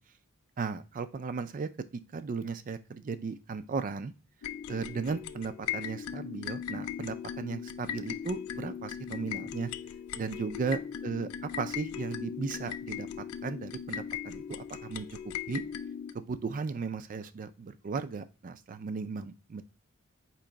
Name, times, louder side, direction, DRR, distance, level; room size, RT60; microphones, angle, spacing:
voice 1, 0.6-4.1 4.7-9.7 10.2-15.6 16.1-19.6, right 5 dB, 40° right, 12 dB, 0.3 m, -36 dB
sound 1, 4.4-16.1, left 8 dB, 85° left, 0.3 m, -39 dB
4.5 x 3.0 x 3.7 m, 0.33 s
head